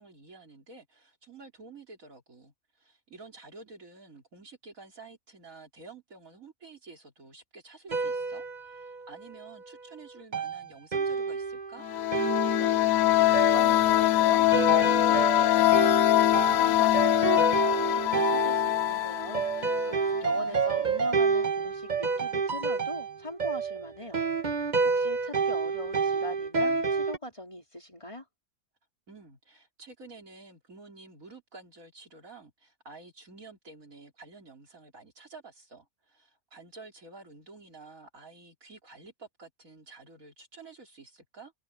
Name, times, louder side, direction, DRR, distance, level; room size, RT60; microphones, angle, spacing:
voice 1, 0.0-11.9 20.0-20.7 29.1-41.5, right 3 dB, 70° right, 3.9 m, -50 dB
sound 1, 7.9-9.4 10.3-27.2, right 5 dB, 35° right, 1.3 m, -29 dB
sound 2, 11.8-20.4, left 14 dB, 75° left, 1.0 m, -23 dB
voice 2, 12.6-28.2, left 1 dB, 20° left, 4.0 m, -41 dB
omnidirectional pair, 1.5 m